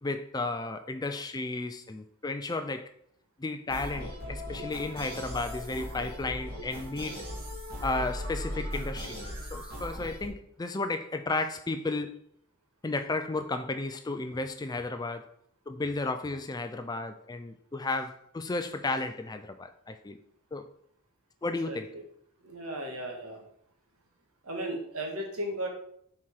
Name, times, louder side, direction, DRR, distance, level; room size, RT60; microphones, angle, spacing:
voice 1, 0.0-2.9 3.4-7.2 7.8-12.2 12.8-15.3 15.7-20.2 20.5-20.7 21.4-22.0, left 3 dB, 15° left, 0.4 m, -33 dB
sound 1, 3.7-10.3, equal, 45° right, 2.1 m, -38 dB
voice 2, 21.6-22.0 22.4-23.4 24.4-25.7, right 1 dB, 80° right, 1.8 m, -35 dB
5.7 x 4.3 x 4.7 m
head